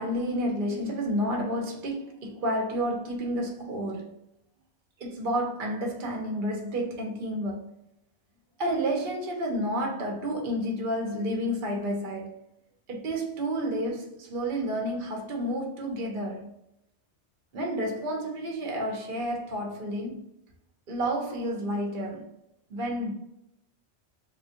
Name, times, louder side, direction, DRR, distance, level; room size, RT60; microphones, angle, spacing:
voice 1, 0.0-4.1 5.0-7.7 8.6-12.4 12.9-16.5 17.5-20.3 20.9-22.3 22.7-23.1, equal, 50° right, 1.0 m, -30 dB
3.5 x 2.3 x 2.8 m
omnidirectional pair, 1.2 m